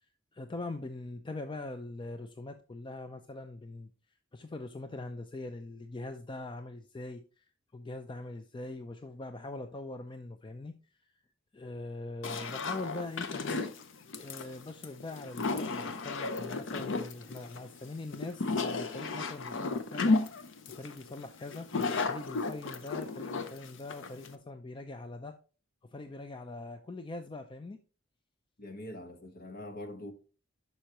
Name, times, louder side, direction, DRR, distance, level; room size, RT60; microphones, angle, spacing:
voice 1, 0.3-3.9 4.3-7.4 7.7-10.8 11.5-13.6 14.1-20.2 20.7-21.7 22.1-25.3 25.8-27.8, left 2 dB, 25° left, 0.4 m, -42 dB
sound 1, 12.2-24.3, left 3 dB, 65° left, 0.8 m, -33 dB
voice 2, 28.6-30.1, left 1 dB, 50° left, 1.2 m, -43 dB
11.5 x 5.5 x 3.0 m
head